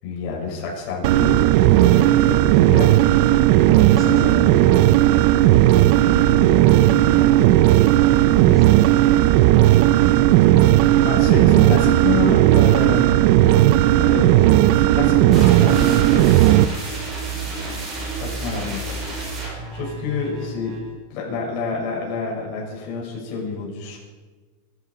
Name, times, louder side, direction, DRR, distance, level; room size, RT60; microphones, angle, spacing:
voice 1, 0.0-1.4 1.7-2.9 4.0-4.5 6.1-6.4 11.0-13.1 14.0-16.4 18.2-18.9 19.7-20.8 21.1-24.0, left 5 dB, 40° left, -4 dB, 6.7 m, -28 dB
sound 1, 1.0-16.6, right 14 dB, 45° right, 0.5 m, -15 dB
voice 2, 3.8-4.8 5.8-9.6 17.3-17.9 18.2-18.3, left 1 dB, 5° left, -6 dB, 7.4 m, -38 dB
sound 2, 15.3-20.9, right 3 dB, 20° right, 5.3 m, -31 dB
25.5 x 11.5 x 4.9 m, 1.3 s
supercardioid pair, 170°, 0 cm